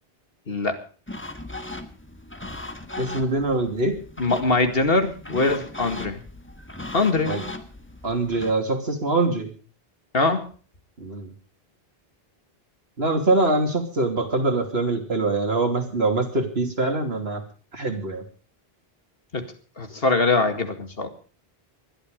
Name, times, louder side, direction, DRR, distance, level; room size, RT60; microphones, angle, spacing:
voice 1, 0.5-0.8 4.2-6.2 6.9-7.3 10.1-10.5 19.3-19.5 19.8-21.1, left 3 dB, 70° left, 7 dB, 2.3 m, -22 dB
sound 1, 1.1-8.5, left 2 dB, 10° left, 1.5 m, -38 dB
voice 2, 3.0-4.0 7.2-7.4 8.0-9.5 11.0-11.3 13.0-17.4 17.7-18.2, right 2 dB, 85° right, 4 dB, 3.2 m, -24 dB
20.5 x 12.5 x 5.2 m, 0.39 s
omnidirectional pair, 1.0 m